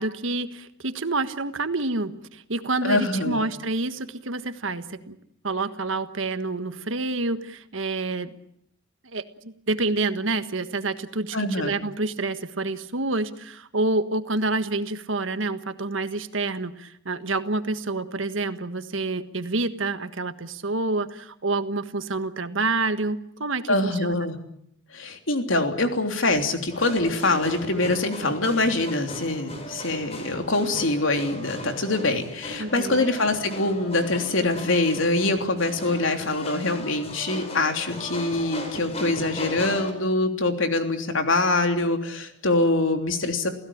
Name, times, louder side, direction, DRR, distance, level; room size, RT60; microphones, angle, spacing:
voice 1, 0.0-5.2 5.4-8.3 9.0-24.2 32.6-33.0, right 2 dB, 80° right, 10 dB, 1.5 m, -28 dB
voice 2, 2.8-3.5 11.3-11.7 23.7-24.4 24.9-43.5, left 2 dB, 80° left, 6 dB, 3.3 m, -24 dB
sound 1, 26.7-39.9, left 1 dB, 30° left, 4.6 m, -37 dB
28.5 x 16.5 x 8.8 m, 0.74 s
head